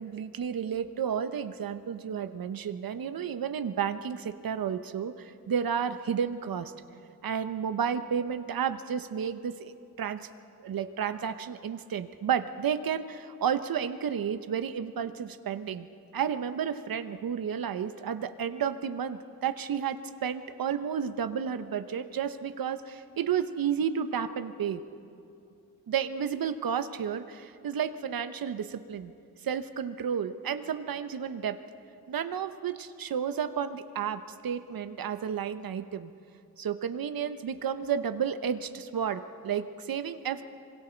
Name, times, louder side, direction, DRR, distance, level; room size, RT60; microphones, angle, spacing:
voice 1, 0.0-6.7 7.2-9.7 10.0-10.2 10.6-15.9 16.1-24.8 25.9-29.1 29.4-31.6 32.1-36.1 36.6-40.4, right 8 dB, 70° right, 10 dB, 1.0 m, -32 dB
26.5 x 24.5 x 4.5 m, 2.5 s
wide cardioid pair, 110°, 37 cm